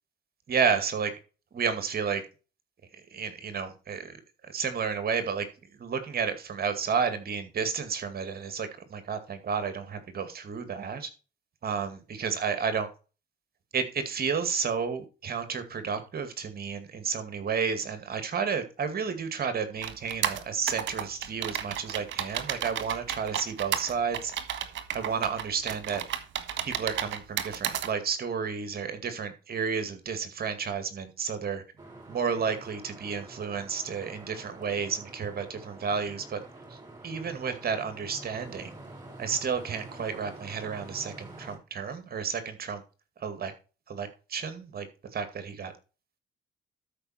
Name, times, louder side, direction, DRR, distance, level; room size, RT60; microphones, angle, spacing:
voice 1, 0.5-1.1 1.5-2.2 3.1-4.2 4.5-5.5 5.8-11.1 11.6-12.9 13.7-24.3 24.9-26.0 26.6-31.6 32.1-36.4 37.0-38.7 39.2-42.8 43.2-43.5 43.9-44.9 45.1-45.7, right 6 dB, 50° right, 10 dB, 2.3 m, -31 dB
sound 1, 19.8-27.9, right 10 dB, 70° right, 1.6 m, -33 dB
sound 2, 31.8-41.6, right 2 dB, 20° right, 6.2 m, -47 dB
13.0 x 5.3 x 4.3 m, 0.33 s
cardioid pair, 90°, 20 cm